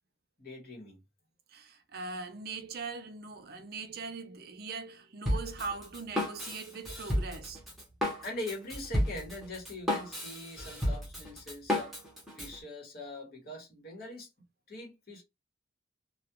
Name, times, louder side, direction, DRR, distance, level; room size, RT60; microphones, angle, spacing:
voice 1, 0.4-1.0 8.2-11.9 12.4-14.3 14.7-15.2, left 1 dB, 55° left, 1.1 m, -42 dB
voice 2, 1.5-7.6, right 4 dB, 55° right, 0.5 m, -41 dB
Drum kit, 5.3-12.6, left 1 dB, ahead, 0.8 m, -33 dB
2.3 x 2.3 x 2.8 m
head